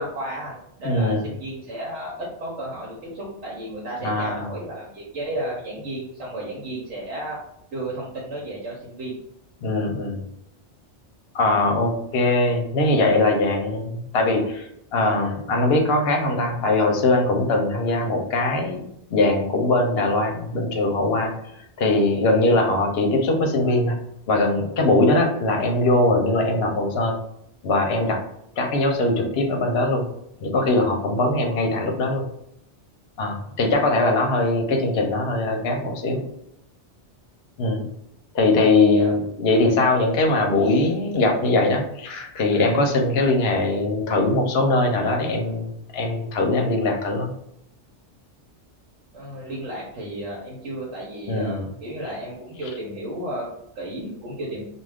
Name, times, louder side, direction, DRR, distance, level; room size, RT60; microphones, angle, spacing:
voice 1, 0.0-7.4 7.7-9.2 38.9-39.1 49.1-54.6, right 1 dB, 80° right, -5 dB, 1.0 m, -33 dB
voice 2, 0.8-1.2 4.0-4.5 9.6-10.2 11.3-21.3 21.8-24.0 24.3-27.1 27.6-28.2 28.6-30.0 30.4-32.2 33.2-36.2 37.6-37.9 38.3-45.7 45.9-47.3 51.3-51.7, left 2 dB, 65° left, 3 dB, 0.8 m, -21 dB
2.3 x 2.3 x 3.3 m, 0.75 s
omnidirectional pair, 1.2 m